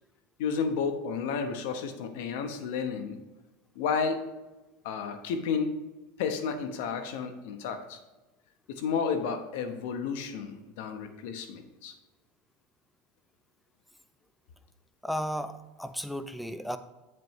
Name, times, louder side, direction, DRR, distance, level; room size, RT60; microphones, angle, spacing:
voice 1, 0.4-3.2 3.7-4.2 4.8-5.8 6.2-8.0 8.7-11.9, left 6 dB, 70° left, 8 dB, 1.0 m, -32 dB
voice 2, 15.0-16.8, equal, ahead, 11 dB, 0.5 m, -34 dB
7.6 x 7.5 x 3.1 m, 1.1 s
supercardioid pair, 120°, 0 cm